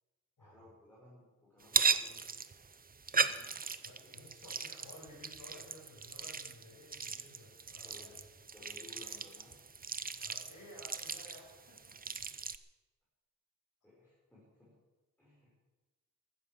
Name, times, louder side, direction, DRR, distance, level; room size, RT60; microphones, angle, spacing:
voice 1, 0.4-2.3 3.2-4.1 7.8-8.1 8.5-9.6 13.8-14.8 15.2-15.5, left 2 dB, 5° left, -8 dB, 6.3 m, -58 dB
sound 1, 1.6-12.6, right 5 dB, 25° right, 0.6 m, -37 dB
voice 2, 3.8-8.2 10.2-12.1, left 1 dB, 70° left, -6 dB, 6.3 m, -55 dB
14.5 x 12.5 x 7.2 m, 1.2 s
wide cardioid pair, 165°, 33 cm